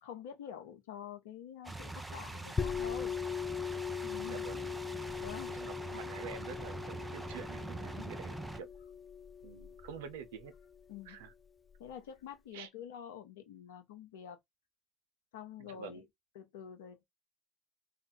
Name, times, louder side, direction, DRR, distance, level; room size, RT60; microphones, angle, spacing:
voice 1, 0.0-3.1 4.0-4.5 5.0-5.5 7.9-8.1 10.9-11.2 11.8-14.4 15.3-16.1 16.3-17.1, left 9 dB, 85° left, 0.7 m, -47 dB
sound 1, 1.6-8.6, right 2 dB, 15° right, 0.8 m, -44 dB
sound 2, 2.6-11.9, left 6 dB, 30° left, 0.5 m, -41 dB
voice 2, 4.2-4.7 5.5-8.7 9.4-10.5 11.0-11.3 12.5-12.7 15.6-16.0, right 7 dB, 85° right, 0.6 m, -47 dB
3.6 x 2.5 x 4.1 m
hypercardioid pair, 60°, 0 cm